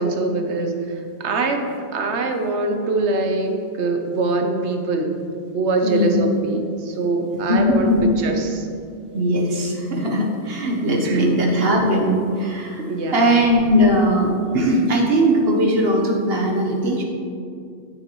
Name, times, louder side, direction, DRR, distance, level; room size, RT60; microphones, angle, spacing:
voice 1, 0.0-5.2 5.5-7.9 8.2-8.7 11.0-11.2 12.8-13.3, right 3 dB, 75° right, 5 dB, 1.1 m, -23 dB
voice 2, 5.8-6.2 7.5-8.1 9.1-12.8 13.1-17.0, equal, 60° right, 0 dB, 1.3 m, -19 dB
9.0 x 7.9 x 3.1 m, 2.4 s
omnidirectional pair, 1.2 m